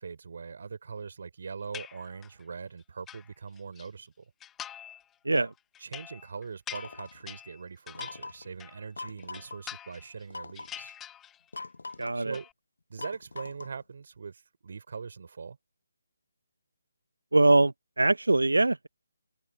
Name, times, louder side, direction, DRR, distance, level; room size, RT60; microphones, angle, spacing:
voice 1, 0.0-4.3 5.3-5.5 5.8-10.9 12.1-12.5 12.9-15.6, right 5 dB, 55° right, 3.5 m, -41 dB
sound 1, 1.7-2.4 2.8-3.9 4.4-5.0 5.4-8.9 9.2-10.2 10.5-11.6 11.9-12.5, left 10 dB, 10° left, 0.4 m, -45 dB
sound 2, 6.7-7.2 7.9-8.5 9.0-9.6 10.3-10.8 11.5-12.2 13.0-13.8, left 3 dB, 75° left, 0.8 m, -42 dB
voice 2, 12.0-12.4 17.3-18.9, right 2 dB, 90° right, 0.5 m, -23 dB
figure-of-eight pair, 155°, 0 cm